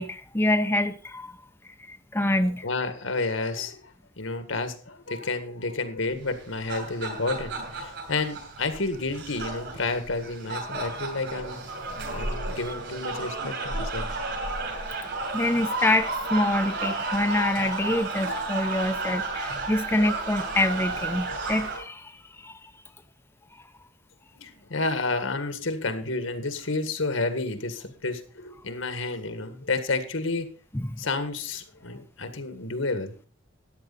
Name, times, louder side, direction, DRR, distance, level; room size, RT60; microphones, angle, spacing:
voice 1, 0.0-1.4 1.9-2.7 14.9-15.0 15.3-22.6 23.5-23.6 30.7-30.9, left 1 dB, 10° left, 7 dB, 0.7 m, -26 dB
voice 2, 2.4-11.6 12.1-14.1 24.3-30.5 31.0-33.1, left 3 dB, 80° left, 9 dB, 1.9 m, -30 dB
sound 1, 6.3-21.8, right 2 dB, 60° right, 6.4 m, -32 dB
14.0 x 10.5 x 4.2 m, 0.37 s
head